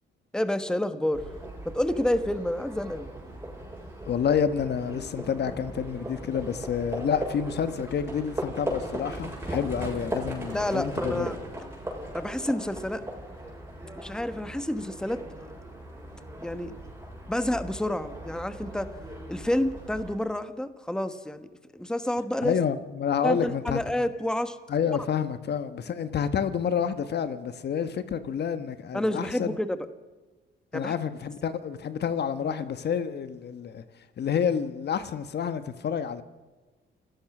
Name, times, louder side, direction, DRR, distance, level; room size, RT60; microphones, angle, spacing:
voice 1, 0.3-1.2 1.6-3.1 10.5-11.4 12.1-13.0 14.0-15.2 16.4-16.7 17.3-18.9 19.3-21.5 21.7-22.5 23.2-24.6 28.9-29.8 30.7-30.9, left 1 dB, 5° left, 1.3 m, -29 dB
Livestock farm animals working animals, 1.1-20.1, right 1 dB, 10° right, 7.3 m, -38 dB
voice 2, 4.1-11.3 22.4-23.8 24.7-29.5 30.7-33.8 34.2-36.2, left 7 dB, 55° left, 1.3 m, -29 dB
29.0 x 16.5 x 6.1 m
cardioid pair, 90°, 20 cm